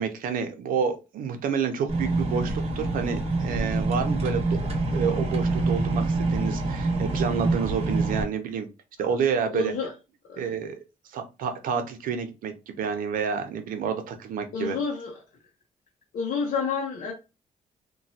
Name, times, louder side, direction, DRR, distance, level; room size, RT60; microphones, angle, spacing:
voice 1, 0.0-8.7 9.0-9.7 10.4-10.8 11.1-14.8, right 6 dB, 80° right, 0.6 m, -29 dB
sound 1, 1.9-8.2, right 2 dB, 45° right, 1.0 m, -26 dB
voice 2, 9.5-9.9 10.3-10.6 14.5-15.1 16.1-17.1, left 5 dB, 75° left, 0.7 m, -29 dB
3.0 x 2.2 x 2.7 m
cardioid pair, 140°, 14 cm